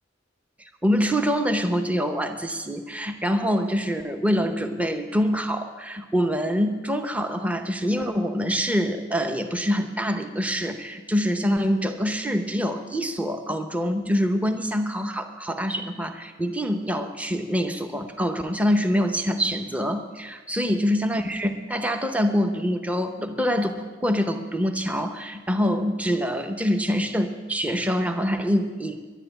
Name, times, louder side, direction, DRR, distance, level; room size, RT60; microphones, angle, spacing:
voice 1, 0.8-29.0, equal, 5° right, 6 dB, 0.7 m, -25 dB
11.0 x 11.0 x 9.0 m, 1.4 s
head